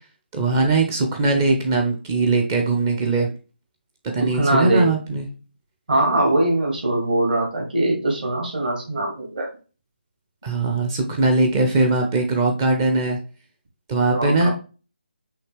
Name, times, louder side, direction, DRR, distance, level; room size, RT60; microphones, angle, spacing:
voice 1, 0.3-3.3 4.1-5.3 10.4-13.2 13.9-14.5, right 3 dB, 20° right, 3 dB, 0.5 m, -20 dB
voice 2, 4.2-4.9 5.9-9.5 14.1-14.5, right 1 dB, 55° right, 0 dB, 1.8 m, -21 dB
5.7 x 2.9 x 3.2 m, 0.34 s
figure-of-eight pair, 150°, 6 cm